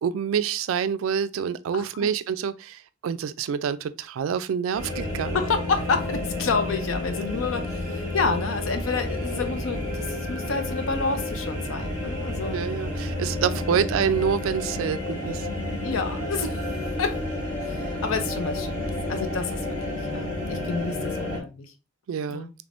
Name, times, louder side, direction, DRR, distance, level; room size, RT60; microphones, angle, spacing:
voice 1, 0.0-5.4 12.5-15.5 22.1-22.5, right 7 dB, 80° right, 0.3 m, -27 dB
voice 2, 1.7-2.1 5.3-12.6 13.6-13.8 15.8-16.7 17.0-17.2 17.6-21.7 22.3-22.5, left 4 dB, 90° left, 0.6 m, -29 dB
sound 1, 4.7-21.4, left 1 dB, 30° left, 1.8 m, -30 dB
3.4 x 3.3 x 2.5 m
head